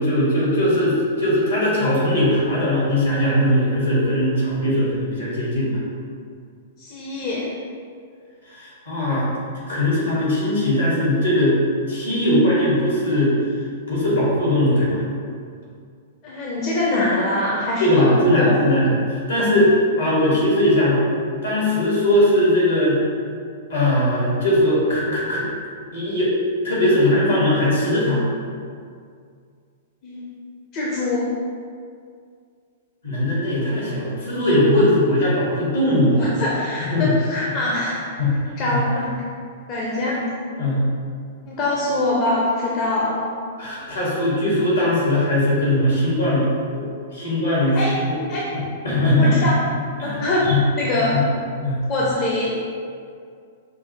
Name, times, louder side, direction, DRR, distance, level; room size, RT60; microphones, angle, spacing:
voice 1, 0.0-5.8 8.5-9.3 9.7-11.6 11.9-13.3 13.9-15.0 17.8-21.1 21.4-23.0 23.7-25.5 25.9-26.3 26.6-28.2 33.0-36.3 36.9-37.1 38.2-38.4 40.6-40.8 43.6-46.5 47.1-47.8 48.0-48.1 48.8-49.5 50.0-50.6 51.1-51.2 51.6-51.8, left 1 dB, 75° left, -7 dB, 1.5 m, -19 dB
voice 2, 6.8-7.5 16.2-18.7 30.0-30.3 30.7-31.3 36.2-38.1 38.6-39.1 39.7-40.3 41.5-43.3 47.7-47.9 48.3-48.5 49.2-49.6 50.0-51.2 51.9-52.6, left 2 dB, 35° left, -5 dB, 0.5 m, -23 dB
5.4 x 2.1 x 2.8 m, 2.2 s
figure-of-eight pair, 105°, 0 cm